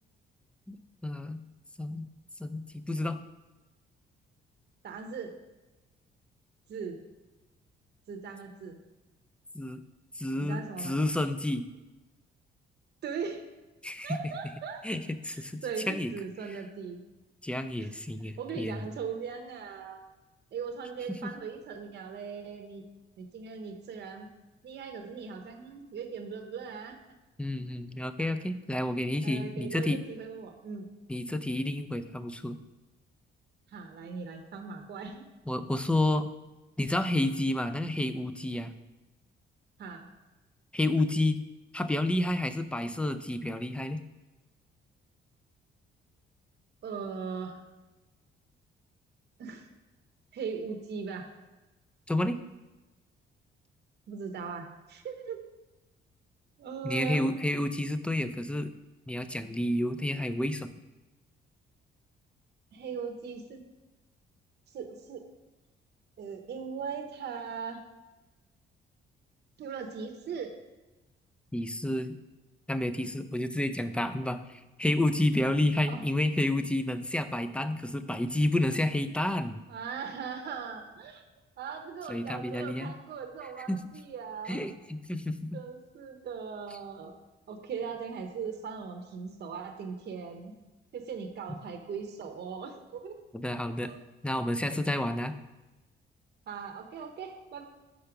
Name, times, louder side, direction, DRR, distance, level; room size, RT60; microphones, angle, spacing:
voice 1, 0.7-1.4 1.8-2.1 2.4-3.2 9.5-9.8 10.2-11.6 13.8-14.2 14.8-15.6 15.9-16.1 17.4-18.9 27.4-30.0 31.1-32.6 35.5-36.3 36.8-38.7 40.7-41.4 41.7-44.0 52.1-52.4 56.8-58.7 59.1-60.7 71.5-72.2 72.7-79.6 82.1-82.9 83.7-83.8 84.5-85.6 93.3-93.9 94.2-95.3, left 1 dB, 5° left, 10 dB, 0.5 m, -30 dB
voice 2, 4.8-5.3 6.7-7.0 8.1-8.8 10.4-11.0 13.0-13.4 14.0-14.8 15.3-17.0 17.8-17.9 18.4-20.0 20.5-22.8 23.2-24.3 24.6-26.9 28.2-28.3 29.2-30.9 33.7-35.2 39.8-40.1 46.8-47.6 49.4-49.7 50.3-51.3 54.1-55.4 56.6-57.3 62.7-63.6 64.7-65.2 66.2-67.8 69.6-70.5 75.9-76.1 79.7-81.2 81.6-84.6 85.5-87.2 87.5-90.5 90.9-93.2 93.8-94.0 96.5-97.7, right 6 dB, 60° right, 4 dB, 0.9 m, -39 dB
5.6 x 5.1 x 5.9 m, 1.1 s
cardioid pair, 90°, 20 cm